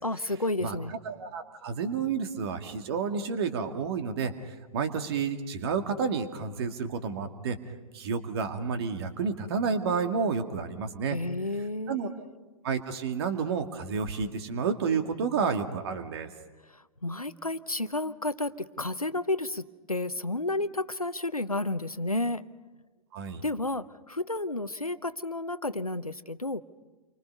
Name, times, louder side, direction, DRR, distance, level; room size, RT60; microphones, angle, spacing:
voice 1, 0.0-0.9 11.1-12.2 17.0-22.4 23.4-26.6, left 2 dB, 90° left, 14 dB, 0.9 m, -31 dB
voice 2, 1.0-4.3 4.7-7.6 7.9-11.2 11.9-12.1 12.6-16.3 23.1-23.4, right 5 dB, 45° right, 6 dB, 2.2 m, -30 dB
29.5 x 24.5 x 5.4 m, 1.2 s
figure-of-eight pair, 115°, 18 cm